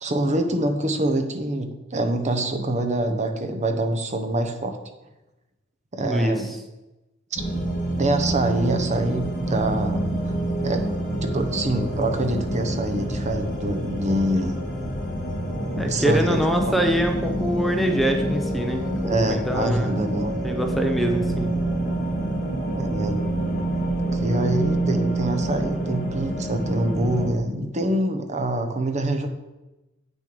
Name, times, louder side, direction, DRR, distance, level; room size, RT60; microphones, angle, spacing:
voice 1, 0.0-4.8 5.9-6.5 7.3-7.4 8.0-10.0 10.3-10.4 10.6-14.6 15.8-16.7 19.0-20.4 22.8-23.3 24.1-29.3, right 1 dB, 35° right, 5 dB, 1.0 m, -25 dB
voice 2, 6.0-6.5 15.8-19.9 20.4-21.5, right 1 dB, ahead, 3 dB, 0.7 m, -24 dB
sound 1, 7.4-27.3, right 1 dB, 40° left, 2.0 m, -27 dB
8.5 x 6.8 x 5.0 m, 1.0 s
head